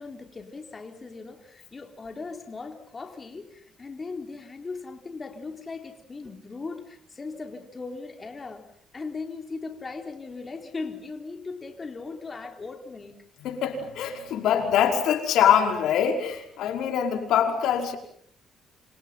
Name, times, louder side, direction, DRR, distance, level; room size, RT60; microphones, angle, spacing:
voice 1, 0.0-8.6 8.9-13.1, left 4 dB, 30° left, 4.0 m, -38 dB
voice 2, 13.4-18.0, left 8 dB, 85° left, 5.3 m, -24 dB
29.0 x 27.5 x 5.8 m
cardioid pair, 90°, 0 cm